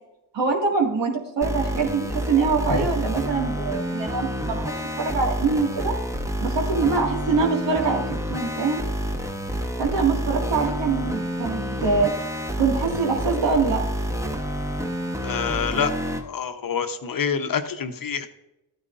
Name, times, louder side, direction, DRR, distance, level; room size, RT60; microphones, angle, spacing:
voice 1, 0.3-5.9 6.4-8.8 9.8-12.1 12.6-13.8, right 4 dB, 75° right, 0 dB, 2.2 m, -24 dB
sound 1, 1.4-16.2, equal, 5° right, 1.1 m, -28 dB
voice 2, 15.2-15.9 16.2-18.3, left 7 dB, 50° left, 8 dB, 1.0 m, -26 dB
12.5 x 9.5 x 2.6 m, 0.95 s
cardioid pair, 55°, 44 cm